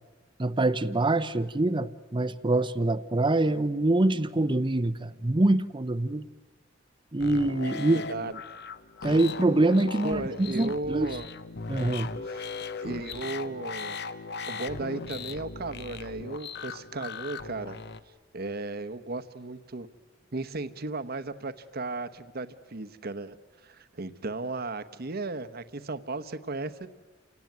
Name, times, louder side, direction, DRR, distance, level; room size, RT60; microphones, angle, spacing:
voice 1, 0.4-6.3 7.1-8.0 9.0-11.1 11.7-12.2, right 2 dB, 25° right, 14 dB, 0.7 m, -25 dB
sound 1, 7.2-18.0, left 4 dB, 55° left, 0.9 m, -38 dB
voice 2, 7.9-8.7 10.0-11.3 12.3-12.5 12.8-14.0 14.5-17.8 18.3-19.9 20.3-23.4 23.6-26.9, right 3 dB, 55° right, 11 dB, 1.0 m, -35 dB
28.5 x 18.0 x 9.4 m, 1.3 s
head